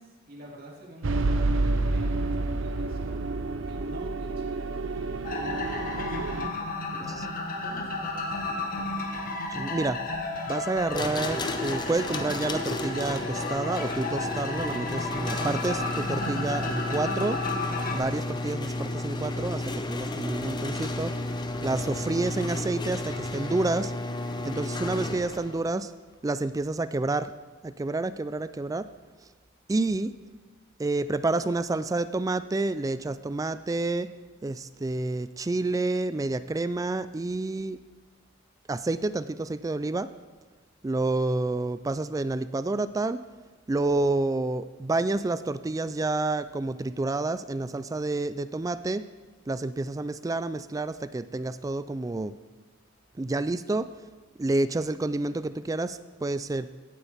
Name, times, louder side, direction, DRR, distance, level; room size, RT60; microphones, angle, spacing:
voice 1, 0.0-3.2 3.7-7.2 7.6-9.3, equal, 50° right, -3 dB, 2.7 m, -47 dB
sound 1, 1.0-6.5, right 2 dB, 75° right, 0.6 m, -29 dB
sound 2, 5.2-18.0, left 2 dB, 45° left, 1.4 m, -33 dB
voice 2, 9.5-10.0 10.5-17.4 17.9-21.1 21.6-23.9 24.4-25.9 26.2-27.3 27.6-28.9 29.7-30.1 30.8-34.1 34.4-37.8 38.7-40.1 40.8-43.2 43.7-49.1 49.5-52.3 53.2-53.9 54.4-56.7, right 2 dB, 15° right, 13 dB, 0.3 m, -29 dB
sound 3, 10.9-25.6, left 2 dB, 20° left, 0.7 m, -33 dB
17.0 x 8.2 x 3.5 m, 1.4 s
head